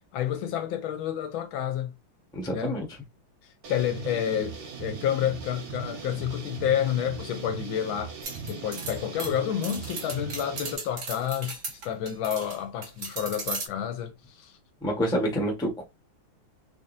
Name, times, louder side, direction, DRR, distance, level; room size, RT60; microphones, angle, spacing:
voice 1, 0.1-1.9 2.5-2.8 3.7-8.1 8.4-14.5, left 10 dB, 75° left, 1.3 m, -29 dB
voice 2, 2.3-2.9 14.8-15.8, equal, 5° left, 0.6 m, -27 dB
sound 1, 3.6-10.7, right 6 dB, 85° right, 2.1 m, -39 dB
sound 2, 8.2-12.6 12.8-13.7, right 4 dB, 45° right, 1.2 m, -36 dB
3.9 x 3.5 x 2.6 m
omnidirectional pair, 2.3 m